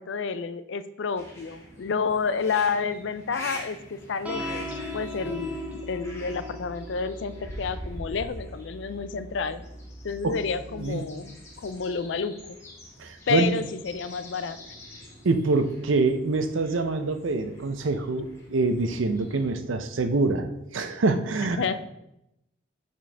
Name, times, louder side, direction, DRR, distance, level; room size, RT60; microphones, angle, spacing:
voice 1, 0.0-9.7 10.0-12.4 13.3-14.6 21.6-21.8, left 5 dB, 65° left, 13 dB, 0.4 m, -30 dB
sound 1, 1.1-19.5, left 1 dB, 15° left, 1.3 m, -47 dB
sound 2, 4.2-10.9, equal, 5° right, 0.7 m, -39 dB
sound 3, 7.4-10.7 11.1-13.3 13.6-14.0 14.3-16.2 16.5-16.6 16.9-17.3 17.7-17.8 20.0-20.1, equal, 85° left, 1.0 m, -42 dB
voice 2, 13.0-13.5 15.2-21.8, right 3 dB, 80° right, 9 dB, 0.6 m, -25 dB
8.7 x 4.4 x 3.4 m, 0.86 s
head